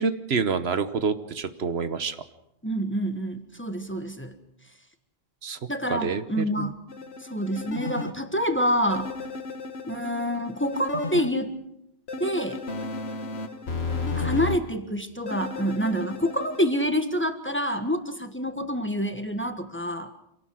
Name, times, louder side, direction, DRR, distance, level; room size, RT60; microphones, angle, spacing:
voice 1, 0.0-2.2 5.4-5.6 5.9-6.7, right 5 dB, 80° right, 11 dB, 1.3 m, -27 dB
voice 2, 2.6-4.3 5.7-6.7 7.2-9.1 9.9-11.5 12.2-12.6 14.1-20.1, equal, 10° left, 7 dB, 1.4 m, -27 dB
sound 1, 6.9-8.1 8.9-11.3 12.1-14.6 15.3-16.6, left 4 dB, 90° left, 1.6 m, -33 dB
26.5 x 18.0 x 6.3 m, 0.83 s
omnidirectional pair, 1.0 m